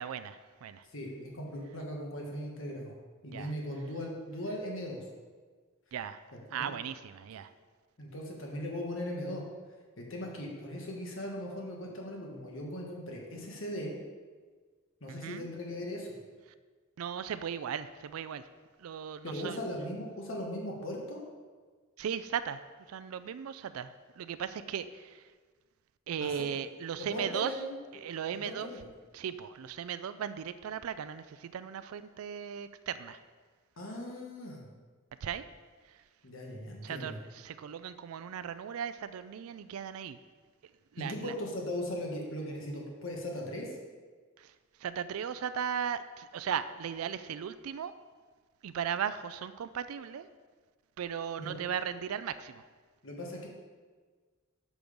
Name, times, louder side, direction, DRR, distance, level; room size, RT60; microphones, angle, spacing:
voice 1, 0.0-0.9 3.3-3.5 5.9-6.2 6.5-7.5 15.1-15.5 17.0-18.5 18.8-19.6 22.0-25.3 26.1-27.6 27.9-28.7 29.1-33.2 35.2-35.5 35.8-36.0 36.8-40.2 40.9-41.3 44.4-47.9 48.6-50.3 51.0-52.7, right 8 dB, 90° right, 12 dB, 0.4 m, -37 dB
voice 2, 0.9-2.9 3.2-5.0 6.5-6.7 8.0-9.4 10.0-13.9 15.0-16.2 19.2-21.2 26.2-26.3 27.0-27.8 28.3-28.9 33.8-34.7 36.2-37.2 41.0-43.8 51.4-51.6 53.0-53.5, left 1 dB, 65° left, -1 dB, 1.5 m, -38 dB
6.9 x 6.1 x 5.1 m, 1.5 s
head